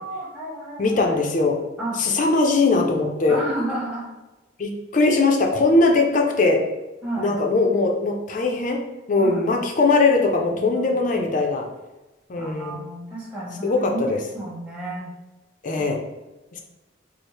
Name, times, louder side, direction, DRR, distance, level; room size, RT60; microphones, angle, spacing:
voice 1, 0.0-1.2 1.8-2.0 3.3-4.1 7.0-7.3 9.2-9.5 10.5-10.9 12.4-15.0 15.8-15.9, right 1 dB, 5° right, -7 dB, 1.1 m, -31 dB
voice 2, 0.8-1.6 2.0-3.4 4.6-6.6 7.2-8.8 9.1-11.6 12.3-12.8 13.6-14.2 15.6-16.0 16.5-16.6, left 3 dB, 40° left, 2 dB, 0.5 m, -20 dB
4.3 x 2.0 x 3.2 m, 1.1 s
head